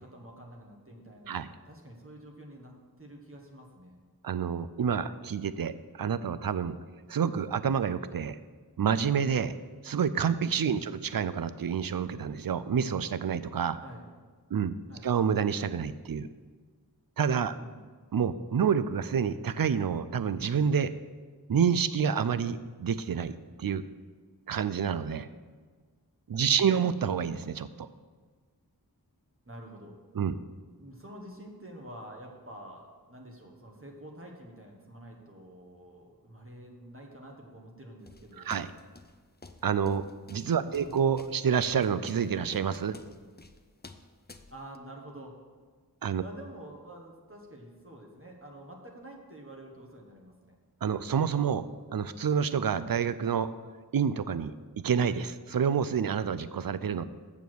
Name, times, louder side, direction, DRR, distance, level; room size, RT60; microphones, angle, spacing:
voice 1, 0.0-4.0 10.7-10.9 13.8-14.1 14.9-15.1 17.5-17.9 26.4-26.7 29.4-30.0 30.8-38.5 40.5-41.1 44.5-45.4 46.2-50.6, right 1 dB, 35° right, 0 dB, 1.5 m, -48 dB
voice 2, 4.2-6.8 7.1-8.4 8.8-9.5 9.8-13.8 14.5-14.7 15.0-16.3 17.2-17.5 18.1-20.9 21.5-23.3 23.6-23.9 24.5-25.3 26.3-27.9 30.2-30.4 38.5-38.7 39.6-43.0 46.0-46.2 50.8-51.7 51.9-53.5 53.9-54.5 54.8-57.0, right 7 dB, 65° right, 14 dB, 0.5 m, -28 dB
sound 1, 38.1-44.8, left 3 dB, 25° left, 0.6 m, -51 dB
7.1 x 7.0 x 6.2 m, 1.5 s
wide cardioid pair, 40°, 38 cm